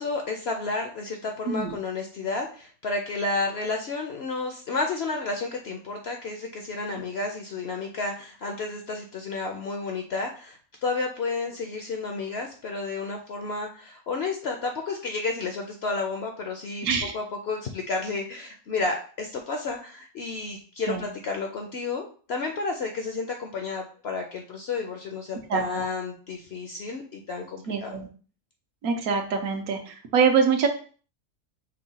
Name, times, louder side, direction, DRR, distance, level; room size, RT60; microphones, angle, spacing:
voice 1, 0.0-16.9 17.1-28.0, left 3 dB, 60° left, 3 dB, 0.7 m, -31 dB
voice 2, 1.5-1.8 6.9-7.0 16.8-17.1 20.9-21.0 25.5-25.9 27.7-28.1 28.8-30.7, right 6 dB, 75° right, 4 dB, 1.2 m, -24 dB
5.5 x 2.2 x 4.0 m, 0.40 s
omnidirectional pair, 1.6 m